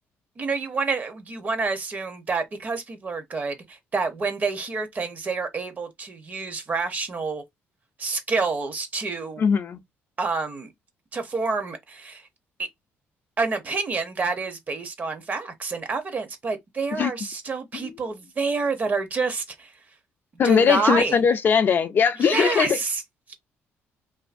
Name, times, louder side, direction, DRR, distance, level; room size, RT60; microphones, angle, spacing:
voice 1, 0.4-7.4 8.0-9.4 10.2-10.7 11.1-12.2 13.4-19.7 20.4-21.2 22.2-23.0 23.3-23.4, right 4 dB, 35° right, 0.7 m, -28 dB
voice 2, 9.4-9.8 17.0-17.1 17.8-17.9 20.4-22.8, left 6 dB, 45° left, 0.4 m, -20 dB
2.6 x 2.5 x 2.5 m
cardioid pair, 120°, 5 cm